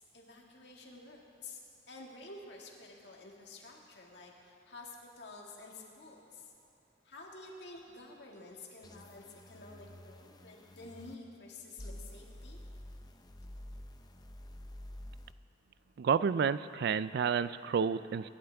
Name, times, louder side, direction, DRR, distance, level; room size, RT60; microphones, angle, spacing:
voice 1, 0.0-6.5 7.0-12.6, left 2 dB, 70° left, -1 dB, 2.0 m, -50 dB
sound 1, 8.8-11.1 11.8-15.3, left 1 dB, 20° left, 0.7 m, -49 dB
voice 2, 16.0-18.3, right 6 dB, 65° right, 15 dB, 0.3 m, -30 dB
24.5 x 11.5 x 3.5 m, 2.7 s
head